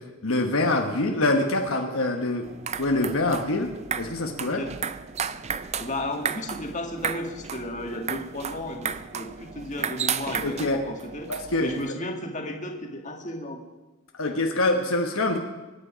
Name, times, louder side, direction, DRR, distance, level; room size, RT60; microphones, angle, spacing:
voice 1, 0.2-2.5 2.8-4.6 10.4-10.8 11.3-11.7 14.2-15.4, left 2 dB, 65° left, 2 dB, 1.2 m, -25 dB
sound 1, 2.4-11.9, right 7 dB, 30° right, 0.4 m, -33 dB
voice 2, 4.4-4.7 5.8-11.3 11.6-13.6, left 1 dB, 35° left, 2 dB, 1.9 m, -34 dB
24.0 x 9.9 x 5.1 m, 1.1 s
head